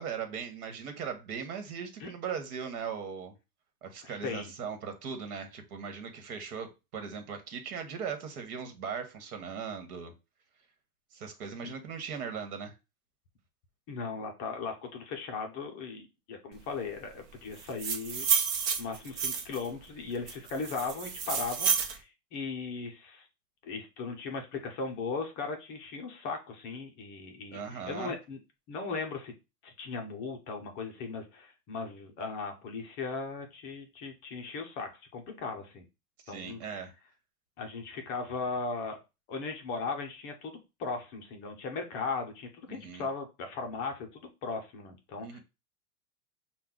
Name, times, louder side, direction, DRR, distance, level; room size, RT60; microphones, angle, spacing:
voice 1, 0.0-3.3 3.8-10.1 11.1-12.7 27.5-28.1 36.3-36.9 42.7-43.1 45.2-45.4, right 6 dB, 65° right, 7 dB, 1.4 m, -39 dB
voice 2, 4.0-4.5 11.6-11.7 13.9-18.3 18.8-23.2 23.6-28.4 28.7-29.3 29.6-35.8 36.3-36.7 37.6-39.0 39.3-40.5 40.8-45.4, left 4 dB, 25° left, 4 dB, 0.5 m, -37 dB
sound 1, 17.6-19.7 20.3-22.0, right 7 dB, 50° right, 0.8 m, -30 dB
5.5 x 2.3 x 3.8 m, 0.27 s
supercardioid pair, 150°, 48 cm